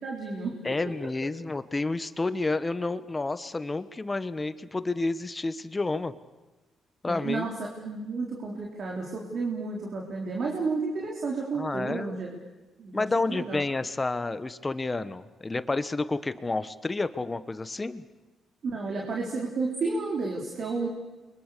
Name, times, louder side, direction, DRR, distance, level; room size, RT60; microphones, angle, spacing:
voice 1, 0.0-0.5 7.1-12.4 12.8-13.6 18.6-20.9, right 4 dB, 55° right, -1 dB, 4.1 m, -32 dB
voice 2, 0.6-6.1 7.0-7.5 11.5-12.1 12.9-18.0, left 3 dB, 20° left, 13 dB, 1.2 m, -30 dB
29.5 x 24.0 x 6.8 m, 1.2 s
cardioid pair, 90°, 0 cm